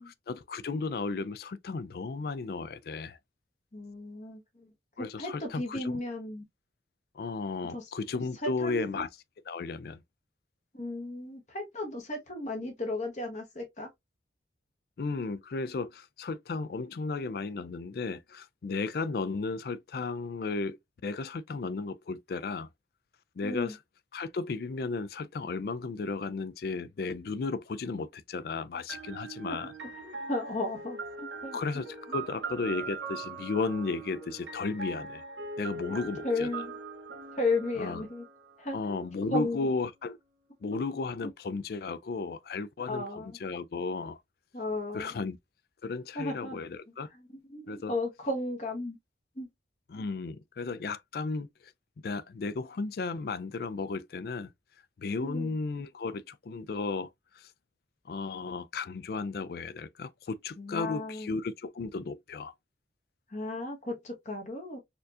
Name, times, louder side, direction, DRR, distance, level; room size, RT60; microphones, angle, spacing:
voice 1, 0.0-3.2 5.0-6.0 7.1-9.1 9.5-10.0 15.0-22.7 23.4-23.8 24.1-29.7 31.5-35.2 35.6-36.7 37.8-38.0 38.7-40.2 40.6-44.2 44.9-45.4 45.8-47.1 47.7-47.9 49.9-51.7 52.0-54.5 55.0-57.5 58.1-62.5, left 4 dB, 55° left, 0.3 m, -34 dB
voice 2, 3.7-4.7 5.0-6.4 7.7-7.8 8.6-9.0 10.7-13.9 23.4-23.7 29.4-29.6 30.0-31.6 35.9-36.0 36.2-36.7 37.4-38.2 38.6-39.0 39.3-39.7 42.8-43.3 44.5-45.2 46.1-46.6 47.5-49.0 49.4-49.5 55.2-55.5 60.6-61.3 63.3-64.8, left 2 dB, 40° left, 1.2 m, -34 dB
sound 1, 28.9-38.7, right 4 dB, 80° right, 0.9 m, -41 dB
4.3 x 2.7 x 2.4 m
head